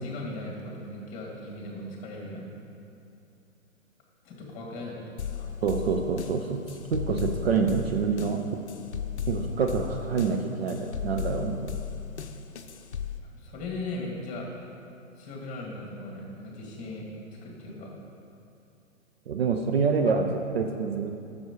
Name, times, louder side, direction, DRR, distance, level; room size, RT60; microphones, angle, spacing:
voice 1, 0.0-2.5 4.2-5.5 13.3-14.5 15.2-17.1 17.4-17.9, left 2 dB, 15° left, -2 dB, 2.1 m, -38 dB
sound 1, 5.2-13.2, left 8 dB, 55° left, 0.7 m, -35 dB
voice 2, 5.6-8.5 9.3-11.8 19.3-21.1, right 5 dB, 50° right, 4 dB, 0.6 m, -27 dB
14.5 x 7.0 x 3.0 m, 2.6 s
figure-of-eight pair, 120°, 40 cm